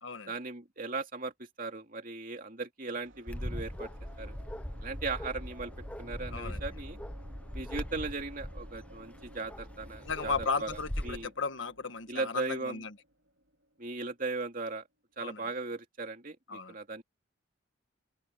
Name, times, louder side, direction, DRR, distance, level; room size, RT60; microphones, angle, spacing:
voice 1, 0.3-3.9 4.2-4.3 4.8-5.7 6.0-7.0 7.5-11.3 12.1-12.8 13.8-14.8 15.2-17.0, right 3 dB, 40° right, 2.8 m, -38 dB
sound 1, 2.9-14.7, equal, 70° right, 3.4 m, -57 dB
Bark, 3.3-11.3, equal, 5° left, 0.8 m, -41 dB
voice 2, 10.0-12.9 15.2-15.4 16.5-16.7, left 4 dB, 70° left, 1.5 m, -35 dB
open air
head